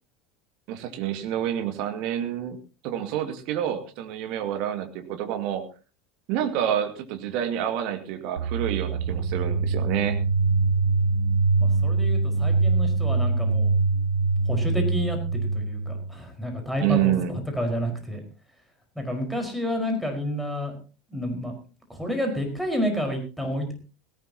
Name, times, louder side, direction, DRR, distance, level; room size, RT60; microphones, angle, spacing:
voice 1, 0.7-2.6 2.8-5.7 6.3-10.2 16.8-17.4, right 10 dB, 55° right, 6 dB, 2.2 m, -28 dB
sound 1, 8.4-16.1, right 3 dB, 75° right, 0.9 m, -23 dB
voice 2, 11.6-13.7 14.5-18.2 18.9-20.7 21.1-21.5 21.9-23.7, equal, ahead, 3 dB, 5.0 m, -30 dB
17.5 x 17.5 x 3.0 m, 0.33 s
figure-of-eight pair, 75°, 0 cm